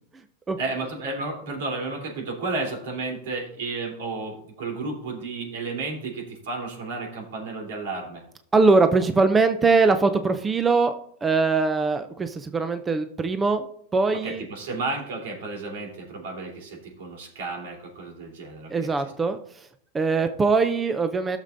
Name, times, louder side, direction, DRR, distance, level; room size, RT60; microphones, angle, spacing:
voice 1, 0.6-8.2 14.2-19.1, right 3 dB, 75° right, 0 dB, 3.3 m, -32 dB
voice 2, 8.5-10.9 11.2-13.7 13.9-14.4 18.7-19.7 19.9-21.4, right 4 dB, 10° right, 9 dB, 0.4 m, -21 dB
15.0 x 6.6 x 2.6 m, 0.65 s
supercardioid pair, 160°, 0 cm